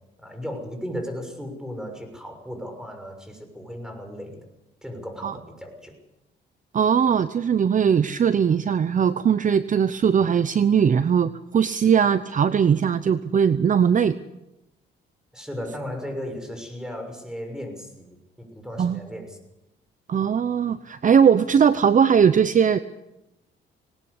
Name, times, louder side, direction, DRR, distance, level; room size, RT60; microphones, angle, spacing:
voice 1, 0.2-4.5 4.8-5.9 15.3-19.4, equal, 5° right, 5 dB, 6.4 m, -36 dB
voice 2, 6.7-14.2 18.8-19.0 20.1-22.8, right 7 dB, 40° right, 14 dB, 0.8 m, -20 dB
20.0 x 19.0 x 8.3 m, 0.92 s
cardioid pair, 90°, 20 cm